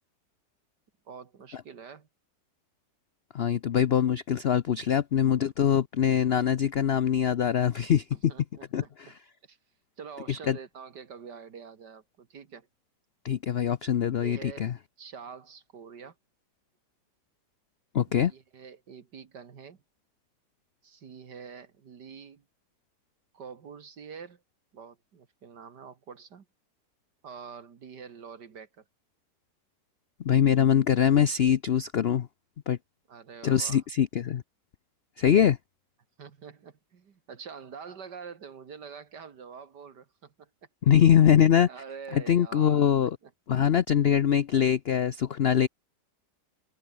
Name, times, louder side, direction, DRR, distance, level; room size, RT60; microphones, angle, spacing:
voice 1, 1.1-2.1 8.1-8.9 9.4-9.6 10.0-12.7 14.1-16.2 18.2-19.8 20.8-22.4 23.3-24.4 24.7-26.5 27.2-28.8 33.1-33.8 36.2-40.5 41.7-43.3, right 6 dB, 70° right, 2.3 m, -46 dB
voice 2, 3.3-8.3 8.7-8.8 10.5-10.6 13.2-14.7 17.9-18.3 30.2-32.3 32.7-32.8 33.4-34.4 35.2-35.6 40.9-41.7 42.1-43.2 43.5-45.7, left 9 dB, 75° left, 0.5 m, -23 dB
omnidirectional pair, 1.9 m